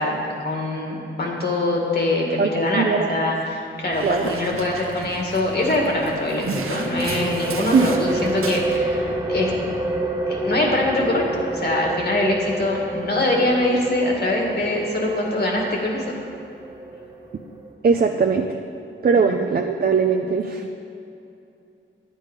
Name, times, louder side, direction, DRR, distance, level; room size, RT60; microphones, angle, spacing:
voice 1, 0.0-9.5 10.3-16.0 19.2-19.3, left 1 dB, 50° left, -1 dB, 2.0 m, -23 dB
voice 2, 2.4-3.1 4.0-4.3 7.7-7.9 17.8-18.6 19.0-20.7, right 5 dB, 45° right, 4 dB, 0.5 m, -20 dB
Dog, 3.9-8.8, right 4 dB, 90° right, 1.0 m, -34 dB
sound 1, 6.3-17.7, right 2 dB, 20° right, 1.0 m, -29 dB
11.0 x 9.1 x 5.2 m, 2.7 s
wide cardioid pair, 165°, 21 cm